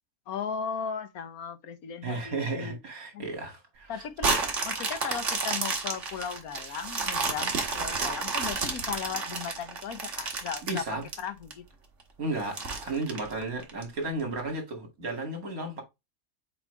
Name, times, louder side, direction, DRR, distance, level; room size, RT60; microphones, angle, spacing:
voice 1, 0.3-2.8 3.1-3.3 3.9-4.4 4.6-10.9 11.2-11.7, left 7 dB, 85° left, 1.4 m, -36 dB
voice 2, 2.0-3.9 10.7-11.0 12.2-15.8, right 2 dB, 75° right, 2.7 m, -33 dB
sound 1, 4.2-11.5 12.0-12.1 12.5-13.8 14.4-14.5, right 4 dB, 55° right, 1.9 m, -31 dB
7.4 x 4.5 x 3.2 m
omnidirectional pair, 1.5 m